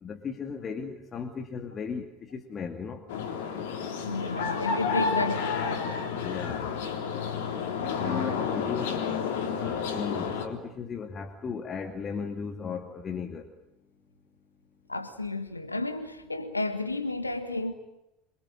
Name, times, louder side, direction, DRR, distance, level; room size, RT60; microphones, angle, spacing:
voice 1, 0.0-3.0 6.2-6.7 8.0-9.0 9.6-13.5, left 6 dB, 30° left, 2.4 m, -36 dB
sound 1, 3.1-10.5, left 6 dB, 60° left, 3.5 m, -30 dB
voice 2, 4.0-5.9 14.9-17.7, left 2 dB, 85° left, 1.7 m, -32 dB
27.5 x 23.0 x 9.0 m
figure-of-eight pair, 75°, 0 cm